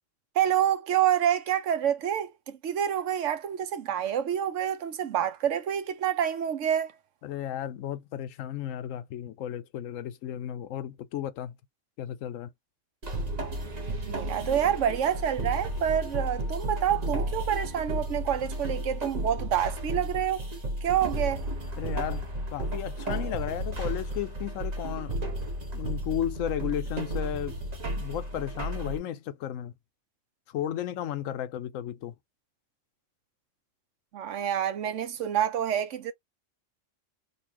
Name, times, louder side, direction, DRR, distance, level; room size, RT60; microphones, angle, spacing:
voice 1, 0.3-6.9 14.1-20.4 20.8-21.4 34.1-36.1, right 9 dB, 75° right, 1.0 m, -27 dB
voice 2, 7.2-11.5 12.0-12.5 21.8-25.3 25.7-27.6 28.0-29.7 30.5-32.1, left 11 dB, 90° left, 1.0 m, -34 dB
sound 1, 13.0-29.0, right 1 dB, 35° right, 1.0 m, -33 dB
4.0 x 2.4 x 2.9 m
omnidirectional pair, 1.3 m